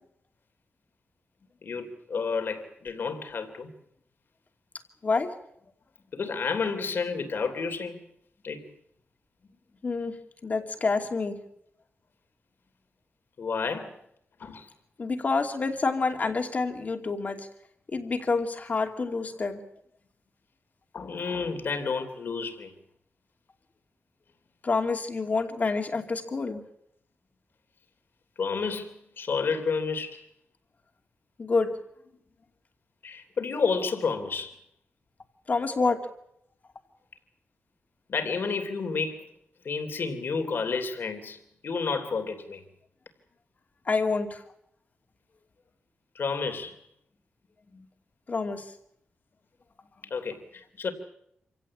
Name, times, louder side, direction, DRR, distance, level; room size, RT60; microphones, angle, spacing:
voice 1, 1.6-3.7 6.1-8.0 8.4-8.7 13.4-13.9 14.4-14.7 16.2-16.3 20.9-22.7 28.4-30.2 33.0-34.5 38.1-39.3 39.6-42.6 46.1-46.8 50.1-50.9, left 5 dB, 60° left, 7 dB, 3.2 m, -30 dB
voice 2, 5.0-5.3 9.8-10.1 10.4-11.4 15.0-17.4 17.9-19.6 24.6-26.6 31.4-31.7 35.5-36.0 43.9-44.4 47.7-47.8 48.3-48.6, left 4 dB, 40° left, 5 dB, 2.5 m, -27 dB
27.0 x 16.5 x 8.7 m, 0.75 s
wide cardioid pair, 160°, 4 cm